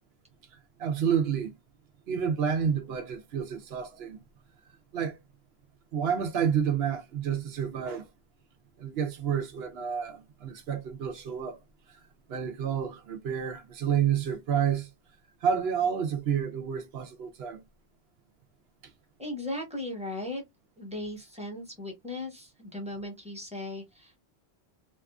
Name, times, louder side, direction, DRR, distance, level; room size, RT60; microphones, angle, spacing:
voice 1, 0.8-1.5 2.1-4.2 4.9-5.2 5.9-8.1 8.8-11.6 11.9-12.0 12.3-14.9 15.4-17.6, right 8 dB, 70° right, 0.8 m, -29 dB
voice 2, 19.2-20.4 20.8-24.2, left 1 dB, 5° right, 0.9 m, -37 dB
2.7 x 2.4 x 2.2 m
omnidirectional pair, 1.1 m